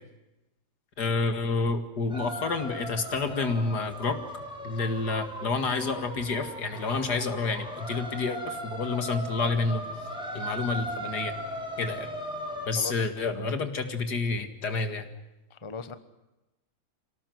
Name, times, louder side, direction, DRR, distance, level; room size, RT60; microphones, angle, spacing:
voice 1, 1.0-4.2 4.6-9.9 10.3-11.3 11.8-12.1 12.7-15.1, left 4 dB, 70° left, 8 dB, 2.6 m, -29 dB
sound 1, 2.1-12.7, equal, 5° right, 5.7 m, -38 dB
voice 2, 12.8-13.6 15.5-15.9, left 4 dB, 20° left, 11 dB, 1.0 m, -40 dB
26.0 x 18.0 x 7.9 m, 0.99 s
omnidirectional pair, 1.8 m